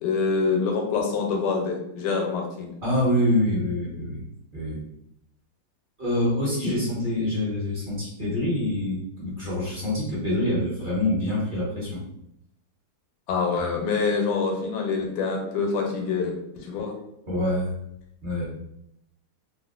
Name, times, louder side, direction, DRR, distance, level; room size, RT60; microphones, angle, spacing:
voice 1, 0.0-2.7 13.3-16.9, left 4 dB, 85° left, 1 dB, 1.5 m, -26 dB
voice 2, 2.8-4.2 4.5-4.8 6.0-12.0 17.3-17.7 18.2-18.5, left 1 dB, 35° right, -8 dB, 0.9 m, -25 dB
3.4 x 2.3 x 2.4 m, 0.78 s
omnidirectional pair, 2.4 m